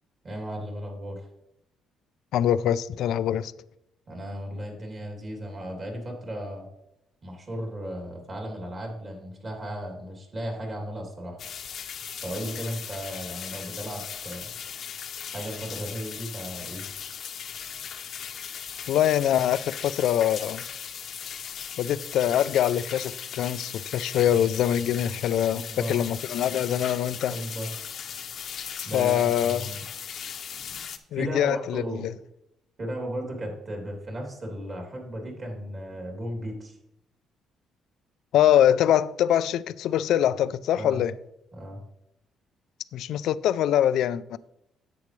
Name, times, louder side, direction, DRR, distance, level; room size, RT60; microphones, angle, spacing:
voice 1, 0.2-1.2 4.1-6.7 7.2-11.4 12.2-14.5 15.3-16.8 25.5-26.0 27.3-27.7 28.8-29.8 31.1-32.0 32.8-36.8 40.7-41.0 41.5-41.8, equal, 30° right, 2.9 m, -35 dB
voice 2, 2.3-3.5 18.9-20.6 21.8-25.6 25.9-27.4 28.8-29.7 31.1-32.1 38.3-41.1 42.9-44.4, left 10 dB, 70° left, 0.4 m, -24 dB
sound 1, 11.4-31.0, left 8 dB, 50° left, 0.8 m, -38 dB
10.5 x 8.5 x 3.2 m
cardioid pair, 155°, 0 cm